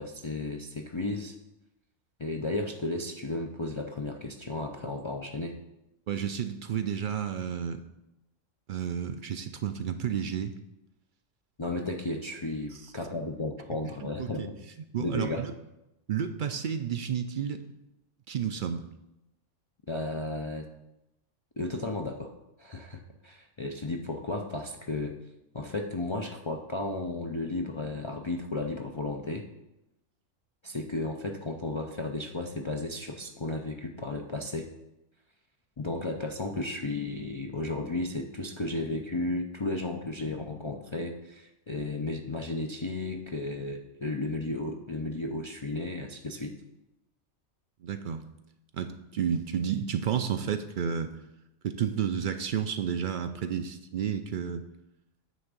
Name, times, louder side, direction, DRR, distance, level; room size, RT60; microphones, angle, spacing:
voice 1, 0.0-1.4 2.2-5.6 11.6-14.5 15.0-15.5 19.9-20.7 21.6-22.3 22.6-25.2 25.5-29.5 30.6-34.7 35.8-46.5, left 2 dB, 50° left, 2 dB, 0.3 m, -34 dB
voice 2, 6.1-7.8 8.7-10.5 12.7-12.8 14.0-14.5 14.9-15.5 16.1-17.6 18.3-18.9 47.8-48.3 48.7-51.1 51.6-54.6, right 8 dB, 60° right, 9 dB, 0.5 m, -31 dB
9.4 x 3.5 x 6.6 m, 0.92 s
omnidirectional pair, 1.3 m